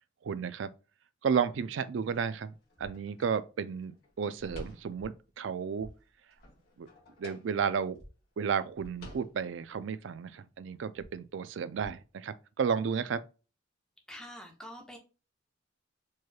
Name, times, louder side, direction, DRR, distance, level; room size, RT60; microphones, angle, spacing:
voice 1, 0.2-0.7 1.2-5.9 6.8-6.9 7.2-8.0 8.4-13.2, right 6 dB, 75° right, 0.4 m, -33 dB
sound 1, 2.0-5.3 5.8-8.0 8.3-8.4 8.7-9.9, left 1 dB, 55° left, 2.0 m, -51 dB
sound 2, 2.8-2.9 5.0-5.1 5.8-5.9 8.0-8.1 8.8-8.9 11.0-11.1 11.8-11.9, equal, 25° left, 0.9 m, -50 dB
voice 2, 14.1-15.0, equal, 5° left, 0.7 m, -46 dB
4.6 x 3.0 x 2.3 m
head